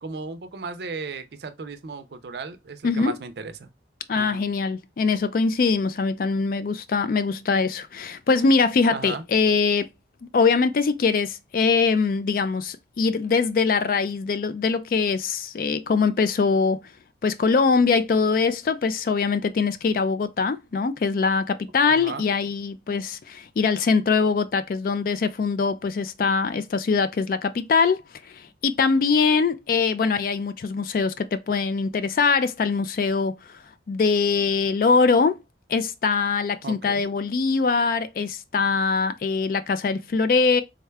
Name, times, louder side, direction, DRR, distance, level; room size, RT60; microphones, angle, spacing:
voice 1, 0.0-3.7 4.1-4.5 8.9-9.2 21.9-22.3 36.6-37.1, right 4 dB, 65° right, 0.4 m, -35 dB
voice 2, 2.8-3.2 4.1-9.9 10.3-16.9 17.2-28.0 28.3-33.4 33.9-35.4 35.7-40.6, left 4 dB, 50° left, 0.3 m, -22 dB
3.6 x 2.2 x 3.2 m
head